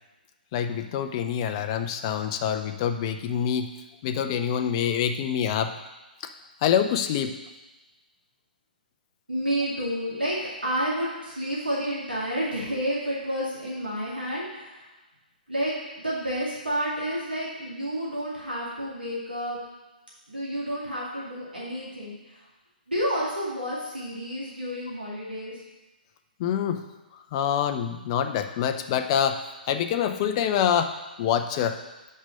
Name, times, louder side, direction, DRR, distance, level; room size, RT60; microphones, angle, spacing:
voice 1, 0.5-3.7 4.0-5.7 6.2-6.3 6.6-7.4 26.4-26.9 27.3-29.4 29.7-30.9 31.2-31.8, left 8 dB, 30° left, 7 dB, 0.5 m, -26 dB
voice 2, 9.3-14.8 15.5-19.6 20.3-22.4 22.9-25.6, equal, 80° right, -6 dB, 2.3 m, -30 dB
5.9 x 5.4 x 6.5 m, 1.1 s
figure-of-eight pair, 125°, 5 cm